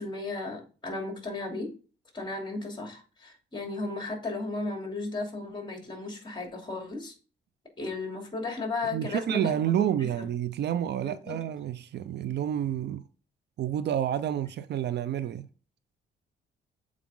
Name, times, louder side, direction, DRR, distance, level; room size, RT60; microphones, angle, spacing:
voice 1, 0.0-1.7 2.1-7.1 7.8-9.7 10.2-10.3 11.0-11.4, left 3 dB, 25° left, 2.9 m, -35 dB
voice 2, 8.9-13.0 13.6-15.5, right 10 dB, 60° right, 0.5 m, -29 dB
7.2 x 4.8 x 3.7 m
cardioid pair, 90°, 20 cm